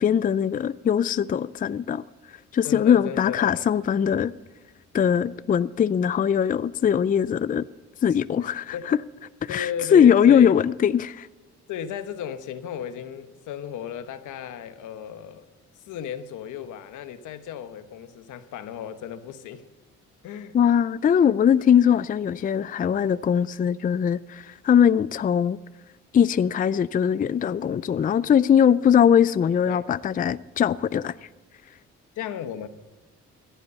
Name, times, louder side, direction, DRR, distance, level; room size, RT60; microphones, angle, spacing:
voice 1, 0.0-2.0 2.5-4.3 4.9-7.7 8.0-9.0 9.4-11.3 20.5-25.6 26.1-31.1, left 8 dB, 30° left, 0.4 m, -21 dB
voice 2, 2.6-3.6 8.1-8.2 8.7-8.9 9.5-10.5 11.7-15.5 15.9-19.6 20.2-20.5 29.6-29.8 32.1-32.7, left 9 dB, 85° left, 1.1 m, -35 dB
15.0 x 8.3 x 7.0 m
cardioid pair, 90°, 30 cm